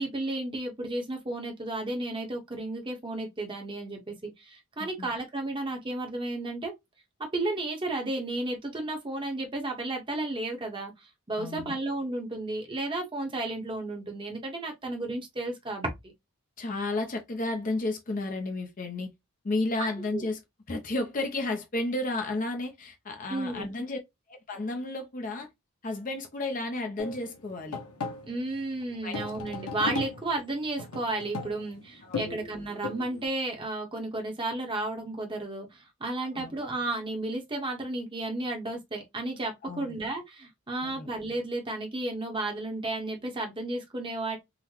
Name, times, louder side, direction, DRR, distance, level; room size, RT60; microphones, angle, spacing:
voice 1, 0.0-6.7 7.3-10.9 11.3-15.9 19.8-20.3 23.3-23.9 28.3-44.4, right 2 dB, 20° right, 0.8 m, -33 dB
voice 2, 11.4-11.7 16.6-19.1 19.4-20.4 20.7-24.0 24.3-25.5 25.8-27.8 29.0-29.2 32.0-32.3 36.2-36.5 39.6-39.9 40.8-41.1, left 2 dB, 35° left, 0.5 m, -32 dB
sound 1, 27.0-33.3, left 4 dB, 85° left, 0.8 m, -37 dB
3.8 x 2.1 x 2.9 m
head